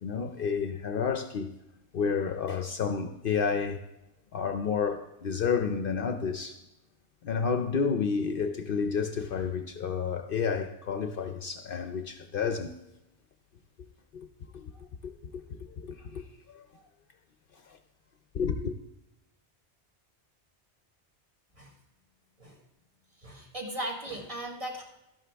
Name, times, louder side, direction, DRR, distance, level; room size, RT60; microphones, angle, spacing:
voice 1, 0.0-1.5 1.9-3.8 4.3-6.6 7.2-12.7 14.1-14.3 14.5-16.8 17.7-17.8 18.3-18.8, left 6 dB, 60° left, 0.7 m, -31 dB
voice 2, 23.2-24.8, right 1 dB, 30° right, 1.7 m, -37 dB
12.5 x 11.0 x 3.4 m
omnidirectional pair, 1.1 m